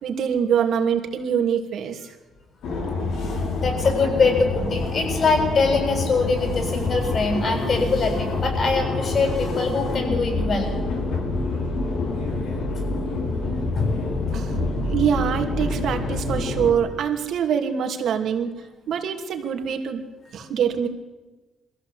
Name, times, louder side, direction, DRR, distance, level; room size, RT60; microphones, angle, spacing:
voice 1, 0.0-2.0 14.3-14.5 14.9-18.5 18.9-20.0 20.3-20.9, right 8 dB, 70° right, 5 dB, 2.8 m, -24 dB
sound 1, 2.6-16.7, left 2 dB, 85° left, 5.6 m, -27 dB
voice 2, 3.6-10.7 12.4-12.5 13.3-13.4 13.7-13.9, left 4 dB, 50° left, 4 dB, 7.4 m, -23 dB
22.5 x 15.0 x 8.5 m, 1.2 s
cardioid pair, 90°, 0 cm